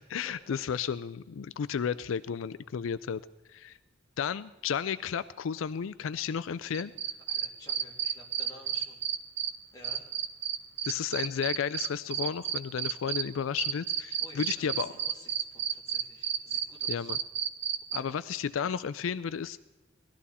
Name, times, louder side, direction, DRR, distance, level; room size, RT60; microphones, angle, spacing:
voice 1, 0.1-3.2 3.5-3.8 4.2-6.9 10.8-14.9 16.9-17.2 17.9-19.6, left 7 dB, 85° left, 15 dB, 0.4 m, -33 dB
sound 1, 6.7-9.5 9.8-13.2 13.6-18.0, right 10 dB, 60° right, 0.8 m, -31 dB
voice 2, 7.1-9.0 9.7-10.1 14.0-17.1 17.9-18.1, left 2 dB, 20° left, -2 dB, 2.6 m, -53 dB
18.5 x 13.0 x 4.2 m, 1.1 s
head